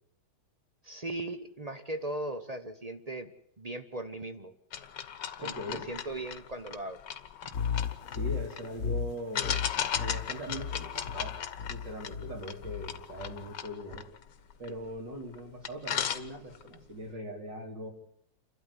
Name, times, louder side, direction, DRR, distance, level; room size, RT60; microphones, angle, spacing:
voice 1, 0.8-3.3 3.6-4.5 5.4-7.0 7.4-7.5, right 2 dB, 35° right, 9 dB, 0.6 m, -38 dB
sound 1, 4.7-8.7 9.3-15.0 15.3-15.4 15.6-16.7, left 9 dB, 65° left, 1.7 m, -37 dB
voice 2, 5.4-5.9 8.1-9.6 10.0-11.4 11.7-14.1 14.6-17.9, equal, 60° right, 3 dB, 4.2 m, -41 dB
sound 2, 7.5-13.5, left 7 dB, 45° left, 1.4 m, -36 dB
28.5 x 12.5 x 9.9 m, 0.73 s
omnidirectional pair, 2.2 m